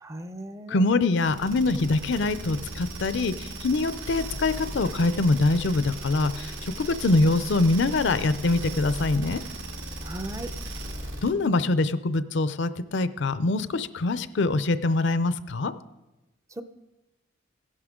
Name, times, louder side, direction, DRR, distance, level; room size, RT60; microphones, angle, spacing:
voice 1, 0.0-0.9 10.0-10.5 16.6-16.7, right 1 dB, 15° right, 11 dB, 0.5 m, -37 dB
voice 2, 0.7-9.4 11.2-15.7, left 2 dB, 65° left, 14 dB, 0.5 m, -24 dB
sound 1, 1.2-11.4, right 1 dB, 80° right, 2.0 m, -37 dB
16.5 x 11.0 x 3.7 m, 1.0 s
head